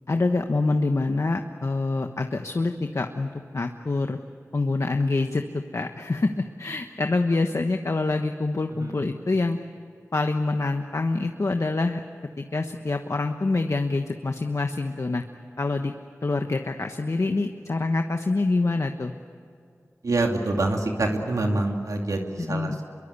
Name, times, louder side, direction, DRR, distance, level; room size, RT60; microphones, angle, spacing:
voice 1, 0.1-4.2 4.5-9.6 10.1-12.0 12.4-15.2 15.6-15.9 16.2-19.1 22.4-22.8, left 3 dB, 60° left, 5 dB, 1.2 m, -26 dB
voice 2, 20.0-22.2 22.5-22.8, right 2 dB, 80° right, 2 dB, 2.6 m, -25 dB
26.5 x 23.0 x 8.4 m, 2.4 s
wide cardioid pair, 55°, 6 cm